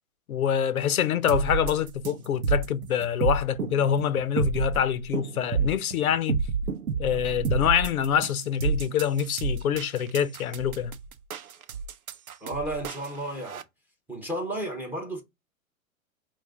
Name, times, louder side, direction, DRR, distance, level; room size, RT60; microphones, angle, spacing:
voice 1, 0.3-6.4 7.0-11.0, left 9 dB, 85° left, 0.6 m, -25 dB
sound 1, 1.3-13.6, right 5 dB, 85° right, 0.6 m, -29 dB
voice 2, 12.4-13.6 14.1-15.2, right 1 dB, 5° right, 0.4 m, -32 dB
4.6 x 2.4 x 3.4 m
hypercardioid pair, 110°, 42 cm